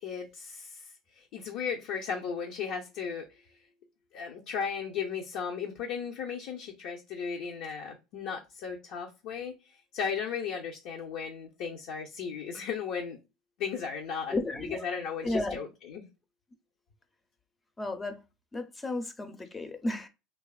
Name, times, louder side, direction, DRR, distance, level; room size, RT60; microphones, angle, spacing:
voice 1, 0.0-3.4 4.1-13.2 13.6-14.4 14.8-16.1, left 6 dB, 70° left, 0.5 m, -36 dB
voice 2, 14.3-14.8 15.2-15.6 17.8-18.2 18.5-20.1, left 2 dB, 20° left, 0.5 m, -33 dB
2.7 x 2.3 x 2.3 m
supercardioid pair, 100°, 0 cm